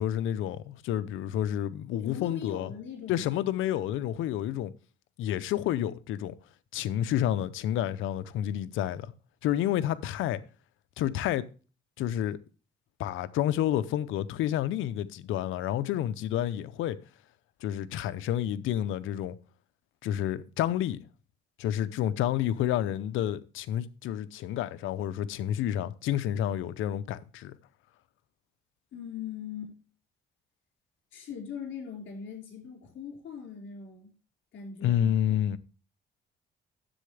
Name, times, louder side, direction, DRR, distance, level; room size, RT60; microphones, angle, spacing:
voice 1, 0.0-2.7 3.1-4.7 5.2-6.3 6.7-9.1 9.4-10.4 11.0-11.4 12.0-12.4 13.0-17.0 17.6-19.4 20.0-21.0 21.6-27.6 34.8-35.6, left 11 dB, 85° left, 0.6 m, -29 dB
voice 2, 2.0-3.5 28.9-29.7 31.1-34.1 34.5-35.4, left 7 dB, 70° left, 4.8 m, -41 dB
10.0 x 7.8 x 3.3 m
cardioid pair, 90°, 20 cm